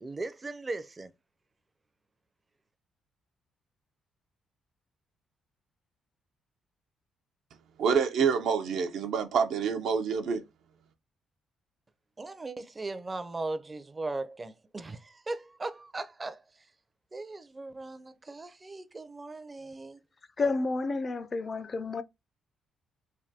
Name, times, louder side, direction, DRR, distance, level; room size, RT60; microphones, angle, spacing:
voice 1, 0.0-1.1 12.2-16.4 17.1-20.0, right 2 dB, 25° right, 0.5 m, -38 dB
voice 2, 7.8-10.4, right 6 dB, 75° right, 0.5 m, -27 dB
voice 3, 20.4-22.0, left 3 dB, 35° left, 0.3 m, -30 dB
3.3 x 2.2 x 2.7 m
cardioid pair, 90°, 0 cm